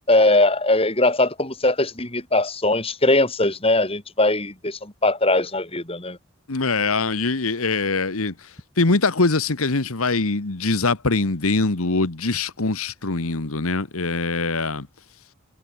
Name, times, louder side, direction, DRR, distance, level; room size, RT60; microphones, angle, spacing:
voice 1, 0.0-6.2, left 2 dB, 25° left, 3.8 m, -20 dB
voice 2, 6.5-8.3 8.8-14.9, left 3 dB, 85° left, 1.5 m, -23 dB
head